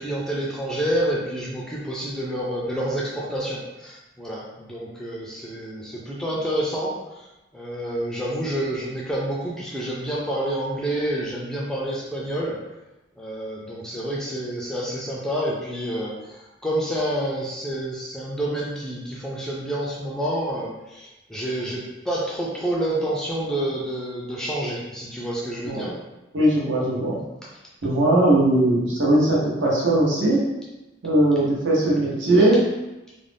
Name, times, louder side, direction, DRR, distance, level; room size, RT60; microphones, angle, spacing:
voice 1, 0.0-7.3 7.5-12.6 13.2-25.9, right 1 dB, 5° left, -5 dB, 0.3 m, -28 dB
voice 2, 26.3-27.2 27.8-30.4 31.0-32.6, right 1 dB, 75° right, -5 dB, 0.9 m, -19 dB
2.5 x 2.0 x 3.3 m, 1.0 s
head